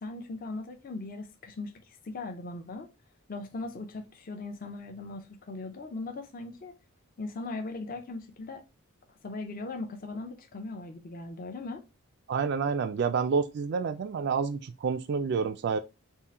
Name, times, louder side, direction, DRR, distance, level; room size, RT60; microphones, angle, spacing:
voice 1, 0.0-2.9 3.3-6.7 7.2-8.6 9.2-11.8, left 3 dB, 40° left, 0.5 m, -39 dB
voice 2, 12.3-15.8, right 5 dB, 50° right, 0.3 m, -28 dB
3.7 x 2.5 x 4.1 m
head